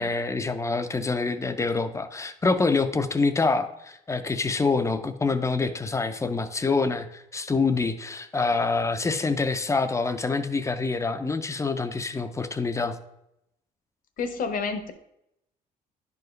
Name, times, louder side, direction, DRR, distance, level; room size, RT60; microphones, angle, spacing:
voice 1, 0.0-13.0, left 4 dB, 15° left, 10 dB, 0.5 m, -26 dB
voice 2, 14.2-14.9, left 5 dB, 55° left, 9 dB, 0.9 m, -29 dB
10.5 x 4.7 x 3.2 m, 0.82 s
cardioid pair, 110°, 17 cm